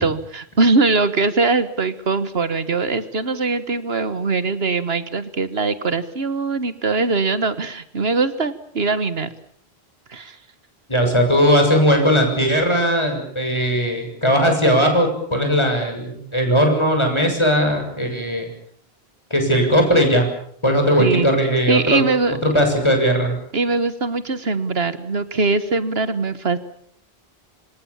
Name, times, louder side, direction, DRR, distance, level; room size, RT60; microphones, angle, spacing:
voice 1, 0.0-9.3 10.1-10.4 21.0-21.3 21.7-22.4 23.5-26.6, right 3 dB, 75° right, 13 dB, 1.6 m, -21 dB
voice 2, 10.9-18.5 19.3-20.3 20.6-22.0 22.4-23.4, equal, 25° left, 4 dB, 7.2 m, -18 dB
26.5 x 24.5 x 7.2 m, 0.63 s
omnidirectional pair, 1.1 m